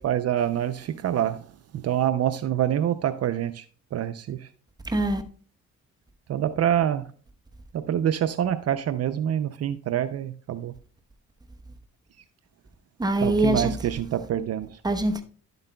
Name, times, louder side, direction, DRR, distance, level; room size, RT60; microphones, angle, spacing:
voice 1, 0.0-1.4 1.7-3.6 3.9-4.5 6.3-7.0 7.7-10.7 13.2-14.7, right 10 dB, 55° right, 0.6 m, -26 dB
voice 2, 4.8-5.2 13.0-13.7 14.8-15.2, right 1 dB, 15° right, 1.0 m, -23 dB
11.5 x 7.8 x 2.3 m
cardioid pair, 90°, 30 cm